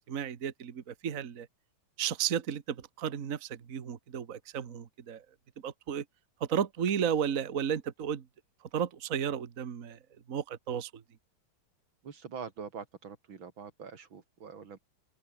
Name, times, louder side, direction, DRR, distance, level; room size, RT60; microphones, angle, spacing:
voice 1, 0.1-1.5 2.0-5.2 5.6-6.0 6.4-8.2 8.7-10.0 10.3-11.0, right 8 dB, 45° right, 1.7 m, -33 dB
voice 2, 12.0-14.8, right 6 dB, 85° right, 3.1 m, -44 dB
omnidirectional pair, 2.1 m